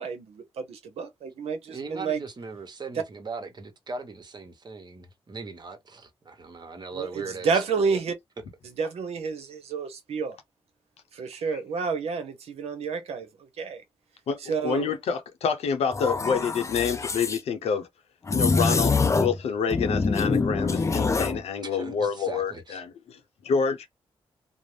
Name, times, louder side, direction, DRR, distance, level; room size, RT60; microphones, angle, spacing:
voice 1, 0.0-2.2 6.9-8.1 8.6-10.4 11.1-13.8 14.4-14.9, right 5 dB, 75° right, 0.7 m, -30 dB
voice 2, 1.7-7.6 21.6-22.8, right 4 dB, 45° right, 0.9 m, -39 dB
voice 3, 14.3-17.9 18.3-23.9, left 6 dB, 80° left, 0.7 m, -28 dB
sound 1, 15.9-17.4 18.3-19.4 19.7-21.4, left 4 dB, 30° left, 0.4 m, -25 dB
2.6 x 2.0 x 3.1 m
cardioid pair, 60°, 10 cm